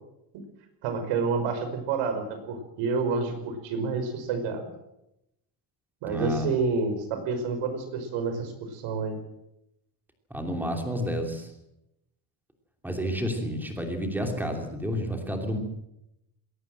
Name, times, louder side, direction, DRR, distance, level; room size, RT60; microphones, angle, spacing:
voice 1, 0.8-4.7 6.0-9.2, right 4 dB, 90° right, 7 dB, 5.3 m, -29 dB
voice 2, 6.1-6.5 10.3-11.5 12.8-15.6, equal, 5° right, 3 dB, 2.9 m, -30 dB
21.0 x 17.5 x 7.7 m, 0.85 s
cardioid pair, 180°, 49 cm